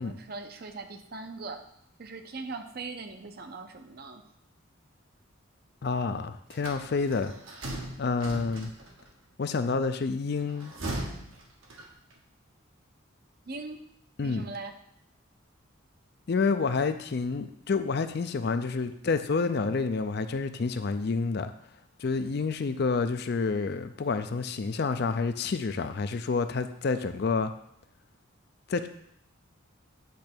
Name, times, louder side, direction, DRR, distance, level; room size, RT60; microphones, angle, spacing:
voice 1, 0.0-1.6 2.0-4.2 13.5-13.8 14.2-14.7, right 3 dB, 50° right, 7 dB, 0.6 m, -40 dB
voice 2, 5.8-7.3 8.0-8.7 9.4-10.7 14.2-14.4 16.3-21.5 22.0-27.5 28.7-28.9, left 4 dB, 50° left, 10 dB, 0.4 m, -28 dB
sound 1, 6.5-9.1 10.4-12.2, right 1 dB, 75° right, 1.4 m, -38 dB
8.4 x 3.2 x 6.0 m, 0.72 s
head